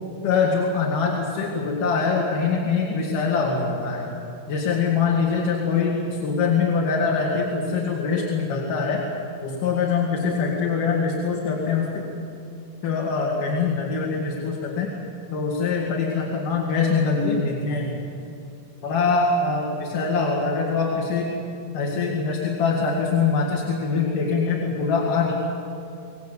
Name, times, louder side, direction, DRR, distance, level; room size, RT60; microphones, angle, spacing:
voice 1, 0.2-4.1 4.5-9.0 9.4-12.0 12.8-14.9 15.3-17.9 18.8-21.4 21.7-25.3, left 5 dB, 85° left, -2 dB, 3.9 m, -23 dB
26.5 x 17.5 x 8.3 m, 2.6 s
omnidirectional pair, 3.7 m